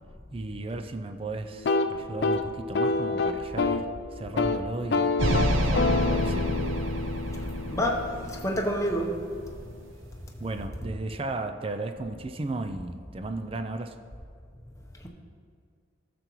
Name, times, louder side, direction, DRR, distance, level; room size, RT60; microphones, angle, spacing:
voice 1, 0.3-6.6 10.4-14.0, right 2 dB, 25° right, 7 dB, 0.4 m, -35 dB
sound 1, 1.5-3.9 4.2-4.6 4.9-8.8, left 3 dB, 55° left, 0.4 m, -28 dB
sound 2, 5.2-9.5, equal, 80° right, 0.8 m, -28 dB
voice 2, 7.7-9.1 15.0-15.1, equal, 15° left, 0 dB, 0.8 m, -28 dB
14.5 x 6.8 x 3.1 m, 2.2 s
head